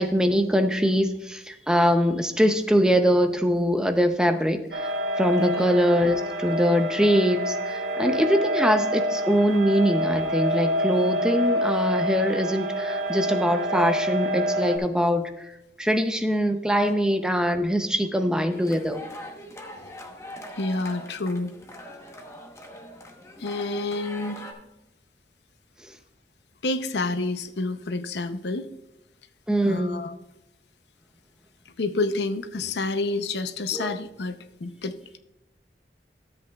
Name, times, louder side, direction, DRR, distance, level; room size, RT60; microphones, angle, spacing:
voice 1, 0.0-4.8 5.2-15.3 15.8-19.0 29.5-30.0 33.7-33.9, equal, 5° right, 7 dB, 0.6 m, -23 dB
sound 1, 4.7-14.8, equal, 85° right, 1.3 m, -27 dB
sound 2, 18.5-24.5, left 1 dB, 15° left, 1.0 m, -42 dB
voice 2, 20.6-21.5 23.4-24.5 26.6-28.7 29.6-30.1 31.8-34.9, left 3 dB, 75° left, 10 dB, 0.6 m, -29 dB
13.0 x 8.0 x 2.3 m, 0.90 s
head